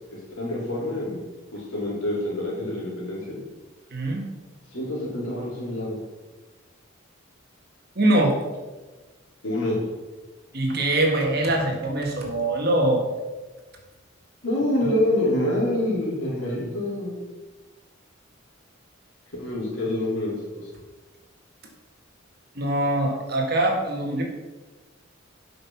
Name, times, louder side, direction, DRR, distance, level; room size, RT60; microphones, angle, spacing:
voice 1, 0.1-1.2 1.5-3.4 4.7-6.0 9.4-9.8 14.4-17.2 19.4-20.7, left 1 dB, 85° left, -4 dB, 3.2 m, -26 dB
voice 2, 3.9-4.3 8.0-8.4 10.5-13.0 22.6-24.2, right 1 dB, 50° right, 1 dB, 1.8 m, -23 dB
8.6 x 5.7 x 5.9 m, 1.3 s
head